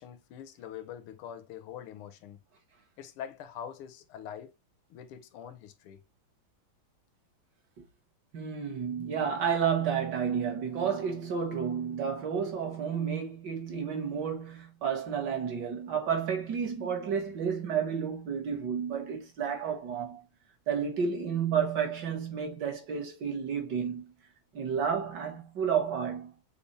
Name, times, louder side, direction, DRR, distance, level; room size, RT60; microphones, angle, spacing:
voice 1, 0.0-2.4 3.0-4.5 4.9-6.0, left 9 dB, 85° left, 1.6 m, -44 dB
voice 2, 8.3-20.2 20.7-24.0 24.5-26.3, right 7 dB, 55° right, 1.8 m, -31 dB
6.8 x 2.4 x 3.2 m
omnidirectional pair, 2.3 m